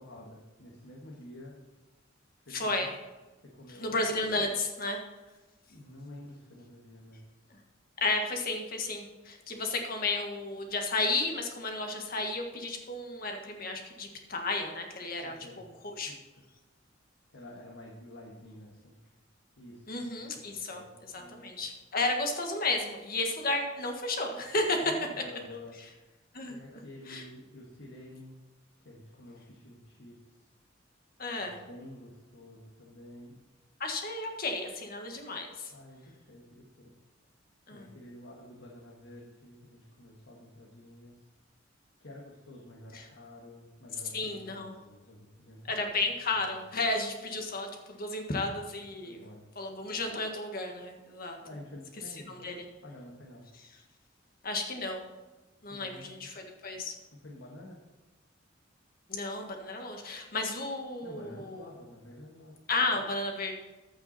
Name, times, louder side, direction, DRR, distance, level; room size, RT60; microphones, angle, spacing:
voice 1, 0.0-1.5 2.4-2.9 3.4-4.0 5.7-7.2 15.2-16.2 17.3-19.0 19.6-21.6 24.8-25.7 26.5-28.4 28.8-30.3 31.4-33.4 35.7-36.9 37.7-41.2 42.0-45.8 46.3-46.4 49.0-49.5 51.4-52.5 52.8-53.4 55.7-56.3 57.2-57.8 61.0-62.5, left 1 dB, 80° left, -3 dB, 1.7 m, -49 dB
voice 2, 2.5-2.9 3.7-5.0 7.5-7.6 8.0-16.1 19.9-24.9 26.3-26.6 27.1-27.2 31.2-31.6 33.8-35.7 37.7-37.9 42.9-43.1 44.1-44.7 45.7-49.3 49.5-51.4 52.3-52.6 54.4-55.0 55.6-57.0 59.1-61.7 62.7-63.5, left 2 dB, 50° left, 3 dB, 1.6 m, -33 dB
14.5 x 5.9 x 4.2 m, 1.2 s
head